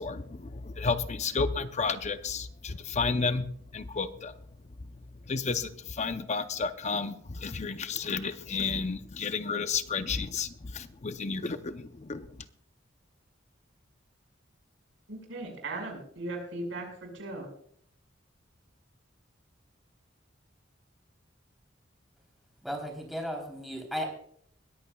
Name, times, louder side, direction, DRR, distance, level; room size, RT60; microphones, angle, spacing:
voice 1, 0.0-3.5 3.7-4.3 5.3-12.2, left 4 dB, 35° left, 10 dB, 0.6 m, -32 dB
voice 2, 15.1-17.5, right 2 dB, 75° right, 2 dB, 5.4 m, -38 dB
voice 3, 22.6-24.1, equal, ahead, 1 dB, 3.4 m, -35 dB
21.0 x 14.0 x 2.3 m, 0.63 s
head